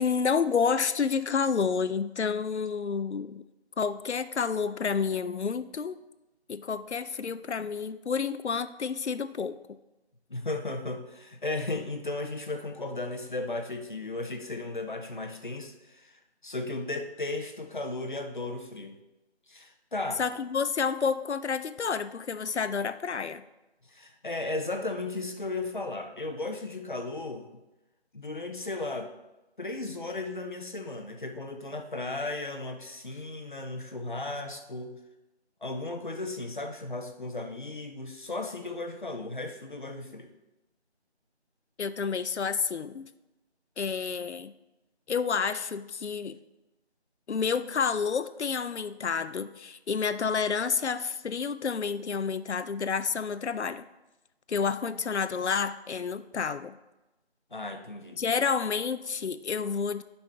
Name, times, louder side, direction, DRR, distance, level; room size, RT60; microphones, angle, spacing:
voice 1, 0.0-3.4 3.8-6.0 6.5-9.6 20.2-23.4 41.8-43.1 43.8-44.5 45.1-46.4 47.3-53.8 54.5-56.8 58.2-60.0, left 6 dB, 80° left, 13 dB, 0.6 m, -29 dB
voice 2, 10.3-19.0 19.5-20.2 23.8-27.5 28.1-29.1 29.6-35.0 35.6-40.3 57.5-58.2, left 2 dB, 45° left, 5 dB, 0.7 m, -35 dB
9.1 x 5.7 x 3.4 m, 1.0 s
figure-of-eight pair, 170°, 34 cm